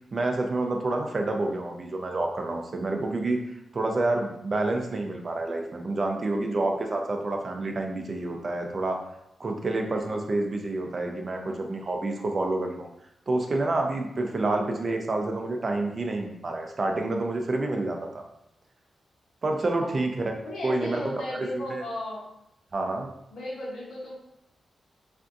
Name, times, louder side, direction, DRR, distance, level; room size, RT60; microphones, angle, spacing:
voice 1, 0.1-3.4 3.7-9.0 9.4-12.9 13.3-18.2 19.4-20.3 20.6-21.0 21.3-21.8 22.7-23.1, right 2 dB, 35° right, 2 dB, 0.4 m, -28 dB
voice 2, 20.4-22.3 23.3-24.1, left 1 dB, 85° left, -5 dB, 1.0 m, -35 dB
3.5 x 2.5 x 2.5 m, 0.81 s
wide cardioid pair, 150°, 0 cm